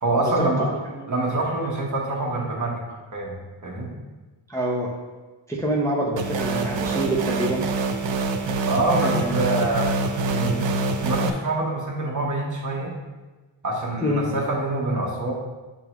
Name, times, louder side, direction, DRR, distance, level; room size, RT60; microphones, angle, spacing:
voice 1, 0.0-0.7 1.1-3.9 8.6-9.9 10.3-10.7 11.0-12.9 13.6-15.3, right 2 dB, 40° right, -2 dB, 1.1 m, -25 dB
voice 2, 4.5-5.0 5.5-7.7 9.0-9.5 14.0-14.3, right 1 dB, 5° left, -4 dB, 0.6 m, -26 dB
sound 1, 6.2-11.3, right 3 dB, 70° right, 0.6 m, -25 dB
9.2 x 3.7 x 2.9 m, 1.2 s
wide cardioid pair, 165°, 47 cm